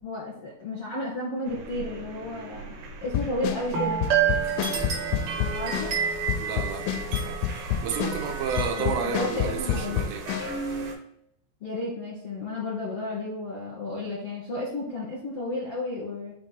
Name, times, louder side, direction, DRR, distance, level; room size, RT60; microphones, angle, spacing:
voice 1, 0.0-2.7 3.0-4.0 5.5-5.9 8.8-10.0 11.6-16.3, left 2 dB, 70° left, -6 dB, 1.4 m, -32 dB
sound 1, 1.5-10.9, right 6 dB, 65° right, 2.6 m, -31 dB
sound 2, 3.0-10.6, left 11 dB, 85° left, 3.1 m, -29 dB
voice 2, 6.4-7.4 7.8-10.3, right 6 dB, 85° right, 4 dB, 3.3 m, -31 dB
7.7 x 2.9 x 4.3 m, 0.73 s
omnidirectional pair, 5.6 m